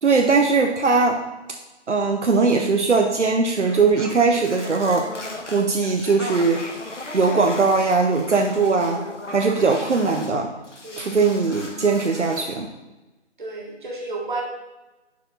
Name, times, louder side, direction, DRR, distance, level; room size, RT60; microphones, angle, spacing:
voice 1, 0.0-1.2 1.9-5.1 5.5-6.6 7.1-9.0 9.3-10.5 11.0-12.7, right 4 dB, 80° right, 3 dB, 1.0 m, -20 dB
sound 1, 3.6-10.4 10.6-12.6, left 2 dB, 85° left, 1.5 m, -37 dB
voice 2, 13.4-14.4, right 3 dB, 45° right, -1 dB, 2.0 m, -31 dB
10.5 x 4.8 x 4.1 m, 1.1 s
figure-of-eight pair, 170°, 35 cm